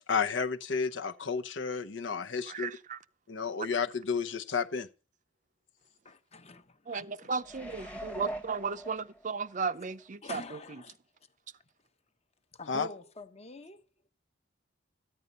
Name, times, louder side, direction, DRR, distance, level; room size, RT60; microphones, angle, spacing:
voice 1, 0.1-2.7 3.3-4.9 12.7-12.9, left 5 dB, 70° left, 0.8 m, -31 dB
voice 2, 2.5-3.0 6.9-10.4, right 5 dB, 40° right, 0.6 m, -35 dB
voice 3, 6.0-7.3 10.2-11.0 12.5-13.8, left 3 dB, 35° left, 1.0 m, -46 dB
sound 1, 7.4-9.5 10.0-10.1, right 1 dB, 5° left, 1.1 m, -41 dB
14.0 x 9.5 x 5.4 m
head